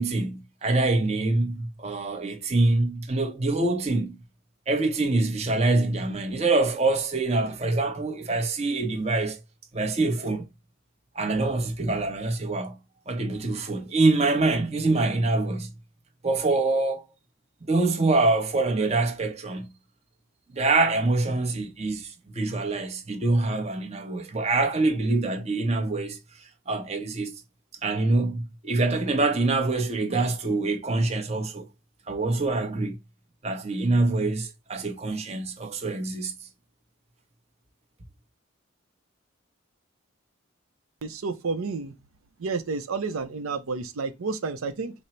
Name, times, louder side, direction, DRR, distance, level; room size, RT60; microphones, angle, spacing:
voice 1, 0.0-4.2 4.7-9.4 9.7-10.4 11.1-12.8 13.1-15.7 16.2-17.0 17.7-19.7 20.5-26.2 26.7-27.3 27.8-31.6 32.1-33.0 33.4-36.3, right 2 dB, 30° right, 0.7 m, -25 dB
voice 2, 41.0-41.9 42.4-44.9, right 4 dB, 85° right, 0.5 m, -30 dB
5.1 x 2.0 x 4.2 m
head